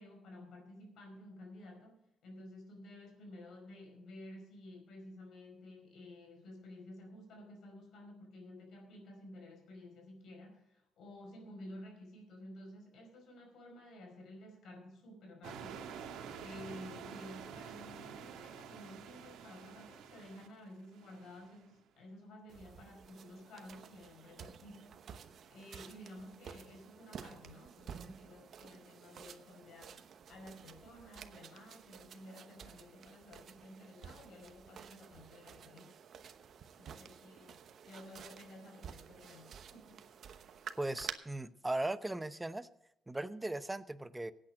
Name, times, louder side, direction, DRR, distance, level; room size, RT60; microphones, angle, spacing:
voice 1, 0.0-15.9 16.4-25.1 25.5-36.0 36.8-37.6 37.8-40.1, left 1 dB, 75° left, 2 dB, 5.1 m, -53 dB
sound 1, 15.4-21.6, right 7 dB, 90° right, 1.6 m, -48 dB
sound 2, 22.5-41.1, right 7 dB, 60° right, 1.0 m, -52 dB
voice 2, 40.8-42.7 43.1-44.3, right 2 dB, 15° right, 13 dB, 0.8 m, -38 dB
17.0 x 8.9 x 5.0 m, 0.82 s
cardioid pair, 90°, 0 cm